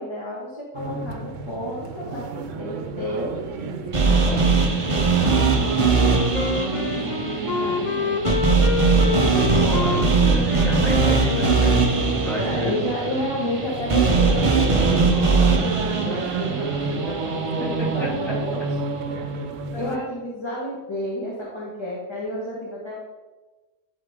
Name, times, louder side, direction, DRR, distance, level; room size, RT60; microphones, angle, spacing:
voice 1, 0.0-3.3 4.0-4.9 5.1-6.5 7.4-8.1 12.2-18.6 19.8-23.0, left 1 dB, 20° left, -5 dB, 1.3 m, -31 dB
sound 1, 0.7-20.0, right 4 dB, 75° right, 1.0 m, -30 dB
sound 2, 3.9-18.1, right 4 dB, 30° right, 0.8 m, -21 dB
Wind instrument woodwind instrument, 5.9-12.6, left 5 dB, 55° left, 0.5 m, -28 dB
voice 2, 9.1-12.8 17.6-18.3 19.2-19.3 19.7-20.1, equal, ahead, -7 dB, 2.6 m, -30 dB
11.0 x 4.3 x 3.6 m, 1.2 s
omnidirectional pair, 1.3 m